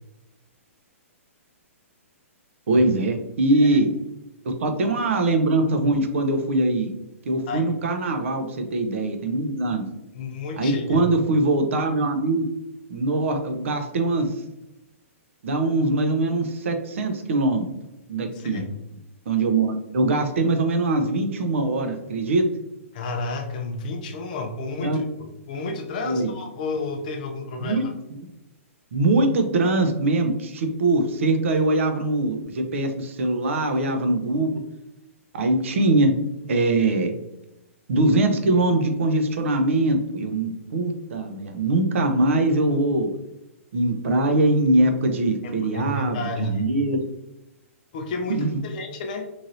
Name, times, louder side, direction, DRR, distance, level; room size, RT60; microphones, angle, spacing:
voice 1, 2.7-3.9 4.4-6.9 7.3-9.8 10.6-12.5 12.9-14.4 15.4-17.7 18.1-18.6 19.3-22.5 24.8-25.0 26.0-26.3 27.6-27.8 28.1-28.3 28.9-34.5 35.3-36.1 36.5-37.1 37.9-43.1 43.7-47.0 48.3-48.6, right 2 dB, 60° right, 6 dB, 0.5 m, -22 dB
voice 2, 10.1-11.1 18.3-18.7 22.9-27.8 45.4-46.7 47.9-49.3, left 2 dB, 35° left, 4 dB, 0.4 m, -31 dB
3.1 x 2.6 x 2.6 m, 0.93 s
hypercardioid pair, 165°, 8 cm